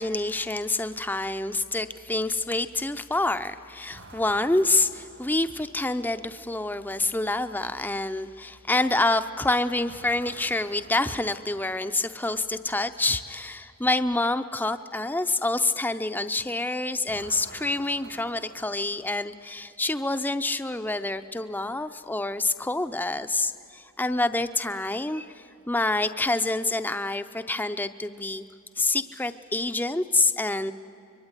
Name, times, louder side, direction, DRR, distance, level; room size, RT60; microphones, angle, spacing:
voice 1, 0.0-28.4 28.8-30.7, left 2 dB, 10° left, 9 dB, 0.5 m, -27 dB
sound 1, 3.9-6.2 9.9-12.4 17.1-19.7, right 2 dB, 70° right, 1.9 m, -50 dB
25.0 x 23.5 x 9.8 m, 2.7 s
head